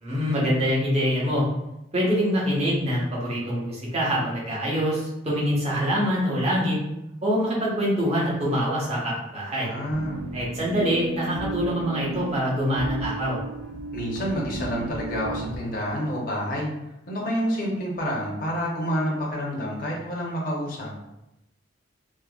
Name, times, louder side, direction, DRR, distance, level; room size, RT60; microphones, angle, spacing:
voice 1, 0.0-1.5 1.9-6.8 7.2-9.7 10.3-13.4, equal, 35° right, -6 dB, 0.9 m, -25 dB
voice 2, 9.6-10.3 13.9-16.7 17.1-20.9, equal, 50° left, -3 dB, 0.7 m, -28 dB
sound 1, 9.9-15.6, right 3 dB, 60° right, 0.4 m, -34 dB
3.4 x 2.1 x 2.3 m, 0.89 s
head